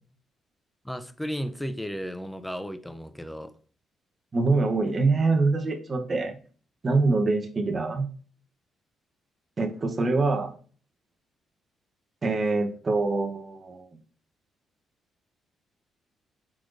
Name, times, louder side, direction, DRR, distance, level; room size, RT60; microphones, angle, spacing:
voice 1, 0.8-3.5, equal, 5° left, 10 dB, 0.4 m, -34 dB
voice 2, 4.3-6.4 6.8-8.1 9.6-10.5 12.2-13.9, right 3 dB, 30° right, 4 dB, 0.7 m, -24 dB
4.6 x 4.1 x 2.4 m, 0.42 s
cardioid pair, 140°, 0 cm